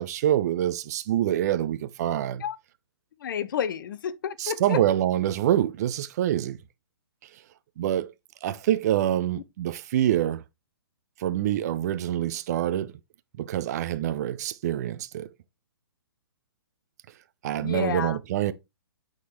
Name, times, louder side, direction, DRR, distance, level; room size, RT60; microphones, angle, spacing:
voice 1, 0.0-2.4 4.4-6.6 7.8-8.1 8.4-10.4 11.2-12.9 13.4-15.3 17.4-18.5, right 12 dB, 40° right, 0.5 m, -26 dB
voice 2, 3.2-4.8 9.3-9.4 17.6-18.2, left 8 dB, 55° left, 0.6 m, -30 dB
8.4 x 3.8 x 3.1 m
figure-of-eight pair, 130°, 13 cm